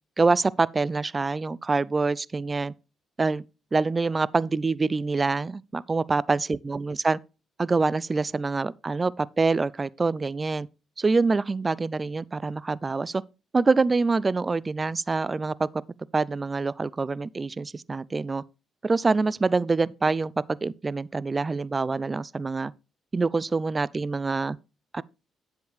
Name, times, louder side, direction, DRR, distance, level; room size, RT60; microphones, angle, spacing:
voice 1, 0.2-2.7 3.2-3.4 3.7-7.2 7.6-10.7 11.0-13.2 13.5-15.7 16.1-18.4 18.8-22.7 23.1-24.6 24.9-25.0, right 3 dB, 30° right, 0.5 m, -25 dB
9.5 x 7.9 x 3.3 m
hypercardioid pair, 50°, 0 cm